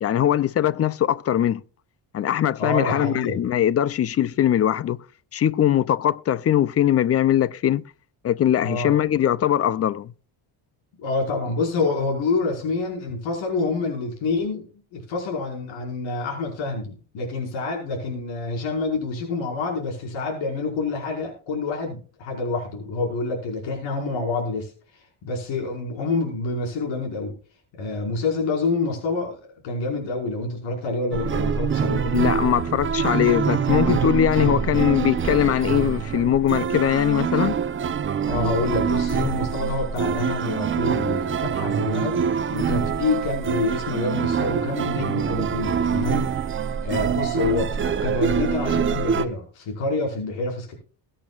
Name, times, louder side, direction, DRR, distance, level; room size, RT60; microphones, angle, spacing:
voice 1, 0.0-1.6 2.1-5.0 5.3-7.8 8.2-10.1 32.0-37.6, left 10 dB, 35° left, 0.5 m, -21 dB
voice 2, 2.6-3.4 8.6-9.0 11.0-14.7 14.9-27.3 27.8-32.1 38.2-42.2 42.5-50.7, left 3 dB, 90° left, 5.3 m, -27 dB
sound 1, 31.1-49.3, right 7 dB, 25° right, 0.7 m, -25 dB
21.5 x 8.7 x 2.4 m
cardioid pair, 165°, 45 cm